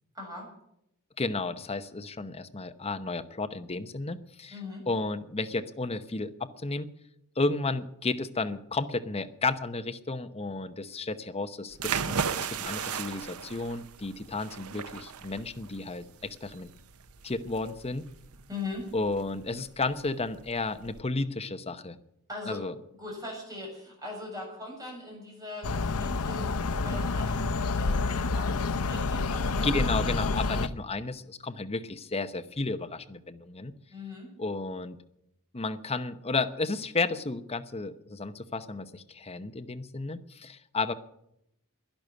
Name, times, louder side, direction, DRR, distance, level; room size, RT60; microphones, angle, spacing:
voice 1, 0.1-0.5 4.5-4.8 18.5-18.9 22.3-22.6 23.0-29.7 33.9-34.3, left 2 dB, 15° right, -1 dB, 6.9 m, -40 dB
voice 2, 1.2-4.6 4.9-6.9 7.4-16.7 17.2-18.1 18.9-22.0 22.5-22.7 29.6-33.7 34.4-35.0 35.5-40.9, left 3 dB, 30° left, 9 dB, 0.9 m, -32 dB
sound 1, 11.7-21.0, right 6 dB, 75° right, 0.7 m, -36 dB
sound 2, 25.6-30.7, left 3 dB, 80° left, 0.8 m, -28 dB
11.5 x 11.0 x 9.8 m, 0.78 s
head